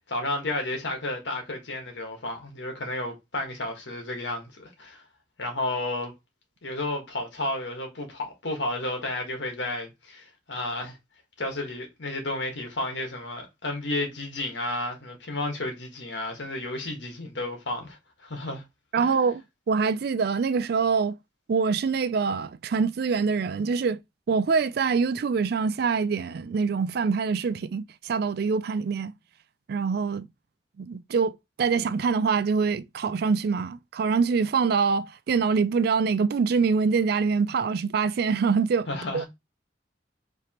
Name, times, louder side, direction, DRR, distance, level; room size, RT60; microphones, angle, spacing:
voice 1, 0.1-5.0 5.4-6.1 6.6-11.0 11.4-18.6 18.9-19.2 38.9-39.3, left 2 dB, 85° left, 1.3 m, -32 dB
voice 2, 18.9-19.4 19.7-21.2 21.5-24.0 24.3-29.1 29.7-30.3 30.8-38.9 39.1-39.2, right 5 dB, 60° right, 0.4 m, -25 dB
5.0 x 3.1 x 2.9 m
head